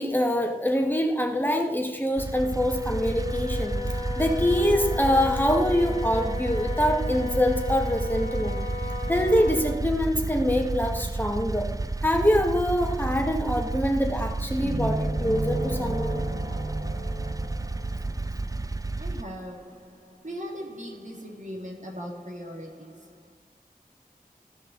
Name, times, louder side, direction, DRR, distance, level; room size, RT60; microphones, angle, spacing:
voice 1, 0.0-3.8 4.2-8.6 9.1-11.7 12.0-16.2, equal, 10° left, 1.8 m, -24 dB
sound 1, 2.2-19.2, right 2 dB, 25° right, 0.4 m, -31 dB
Wind instrument woodwind instrument, 2.6-9.9, left 5 dB, 40° left, 2.1 m, -35 dB
sound 2, 14.6-18.4, right 2 dB, 85° right, 1.6 m, -33 dB
voice 2, 19.0-23.3, equal, 55° right, 2.3 m, -39 dB
15.0 x 5.4 x 4.0 m
wide cardioid pair, 45°, 15 cm